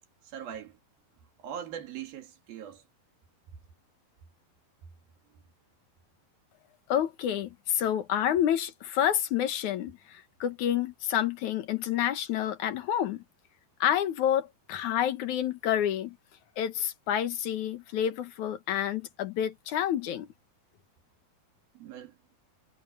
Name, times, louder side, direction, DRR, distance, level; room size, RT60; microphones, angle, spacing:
voice 1, 0.2-0.8 1.4-2.8 21.7-22.2, right 9 dB, 75° right, 4.4 m, -41 dB
voice 2, 6.9-13.2 13.8-16.2 16.6-20.3, left 10 dB, 60° left, 2.5 m, -29 dB
omnidirectional pair, 4.2 m